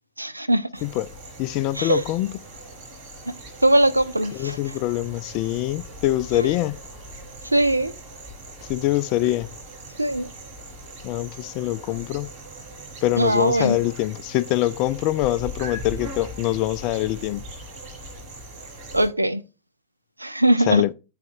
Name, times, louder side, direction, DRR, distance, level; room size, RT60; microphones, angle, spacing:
voice 1, 0.2-0.7 1.8-2.0 3.6-4.6 6.3-6.5 7.5-7.9 10.0-10.3 13.2-13.8 18.9-19.4 20.2-20.9, right 1 dB, 85° right, 0.4 m, -20 dB
sound 1, 0.7-19.1, right 1 dB, 55° right, 4.2 m, -40 dB
voice 2, 1.4-2.4 4.3-6.8 8.7-9.5 11.0-12.3 13.0-17.4 20.7-20.9, left 15 dB, 45° left, 0.3 m, -24 dB
8.5 x 5.8 x 2.4 m
figure-of-eight pair, 90°, 0 cm